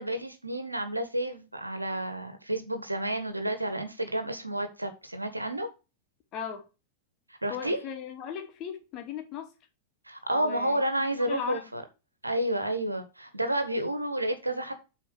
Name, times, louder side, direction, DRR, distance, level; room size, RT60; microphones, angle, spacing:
voice 1, 0.0-5.7 7.4-7.8 10.1-11.8 12.2-14.7, right 1 dB, 85° right, 1.5 m, -30 dB
voice 2, 6.3-6.7 7.5-9.5 10.3-10.8 11.1-11.6, left 8 dB, 35° left, 2.4 m, -37 dB
8.0 x 4.4 x 6.6 m
figure-of-eight pair, 90°, 0 cm